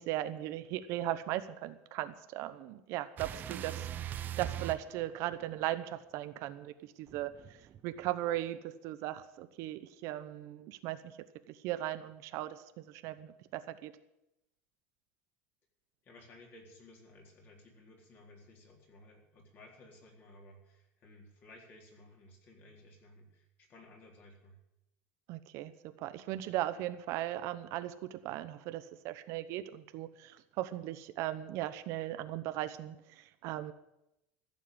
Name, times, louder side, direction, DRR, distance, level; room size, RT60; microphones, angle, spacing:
voice 1, 0.0-3.9 4.1-11.1 11.5-13.9 25.3-25.7 26.0-33.7, right 14 dB, 55° right, 11 dB, 0.9 m, -38 dB
sound 1, 3.2-5.7 7.1-8.4, right 11 dB, 30° right, 0.6 m, -41 dB
voice 2, 16.0-24.6, left 1 dB, 35° left, 0 dB, 4.1 m, -57 dB
15.0 x 7.5 x 10.0 m, 0.88 s
cardioid pair, 155°, 6 cm